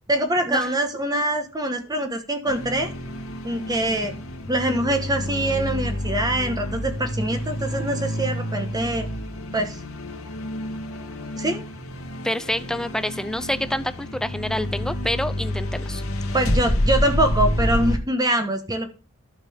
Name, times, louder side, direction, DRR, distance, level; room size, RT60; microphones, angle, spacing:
voice 1, 0.1-2.9 3.4-4.1 4.5-9.1 9.5-9.8 11.4-11.6 16.3-18.9, right 1 dB, 20° right, 6 dB, 1.3 m, -24 dB
sound 1, 2.5-18.0, left 1 dB, 75° left, 2.1 m, -28 dB
voice 2, 12.2-16.0, left 1 dB, 5° left, 13 dB, 0.5 m, -27 dB
12.5 x 6.9 x 3.6 m, 0.33 s
head